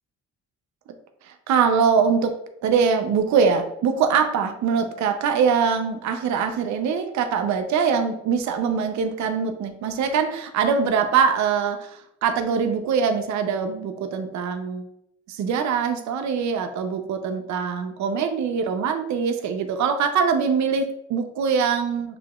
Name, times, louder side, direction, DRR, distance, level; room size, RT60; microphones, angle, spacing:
voice 1, 1.3-2.3 2.6-14.9 15.3-22.2, right 6 dB, 65° right, 7 dB, 0.6 m, -23 dB
6.8 x 2.9 x 2.3 m, 0.77 s
cardioid pair, 90°, 30 cm